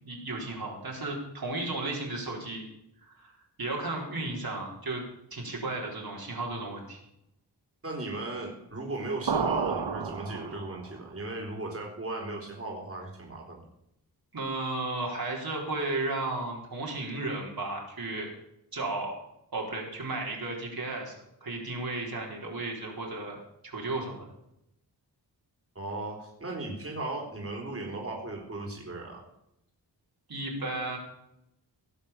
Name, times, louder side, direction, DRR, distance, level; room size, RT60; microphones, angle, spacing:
voice 1, 0.0-2.6 3.0-3.3 3.6-5.0 5.3-7.0 14.3-18.3 18.7-19.1 19.5-21.1 21.4-24.2 30.3-31.0, right 2 dB, 60° right, -2 dB, 4.1 m, -34 dB
voice 2, 7.8-13.6 25.8-29.2, right 2 dB, 35° right, -1 dB, 3.9 m, -36 dB
sound 1, 9.3-11.0, right 6 dB, 85° right, 1.3 m, -31 dB
17.5 x 7.6 x 7.2 m, 0.80 s
wide cardioid pair, 100°, 40 cm